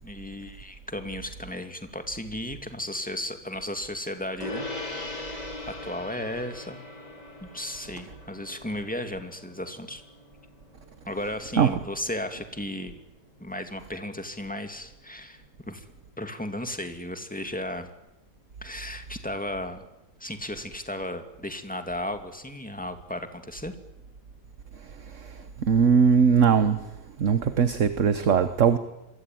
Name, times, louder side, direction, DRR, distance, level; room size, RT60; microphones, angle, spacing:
voice 1, 0.0-4.7 5.2-5.5 5.8-6.8 7.4-10.0 11.1-12.9 13.4-15.8 16.2-17.9 18.6-19.8 20.2-23.7, left 1 dB, 5° left, 7 dB, 2.4 m, -35 dB
Gong, 4.4-14.1, left 2 dB, 20° left, 4.7 m, -41 dB
voice 2, 25.6-26.8 27.2-28.8, right 6 dB, 50° right, 11 dB, 1.4 m, -20 dB
27.5 x 23.5 x 9.3 m, 0.95 s
omnidirectional pair, 1.9 m